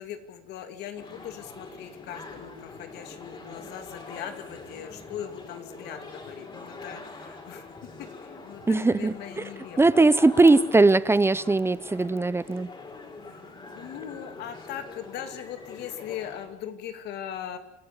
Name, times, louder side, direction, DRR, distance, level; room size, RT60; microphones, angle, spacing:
voice 1, 0.0-7.7 8.0-10.0 13.3-17.6, left 10 dB, 80° left, 2.8 m, -40 dB
sound 1, 1.0-16.5, left 3 dB, 30° left, 5.5 m, -44 dB
voice 2, 8.6-9.1 9.8-12.7, right 3 dB, 15° right, 0.8 m, -20 dB
29.0 x 13.5 x 9.9 m
cardioid pair, 110°, 17 cm